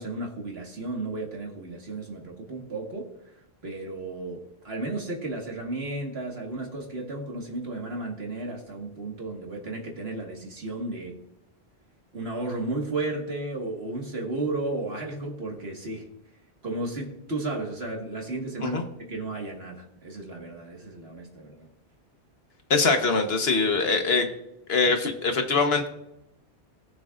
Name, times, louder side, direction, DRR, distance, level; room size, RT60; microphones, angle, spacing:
voice 1, 0.0-3.1 3.6-11.2 12.1-16.1 16.6-21.7, right 2 dB, 70° right, 0 dB, 2.1 m, -33 dB
voice 2, 22.7-24.3 24.7-25.9, left 4 dB, 70° left, 5 dB, 1.5 m, -23 dB
19.5 x 7.0 x 2.5 m, 0.83 s
omnidirectional pair, 1.1 m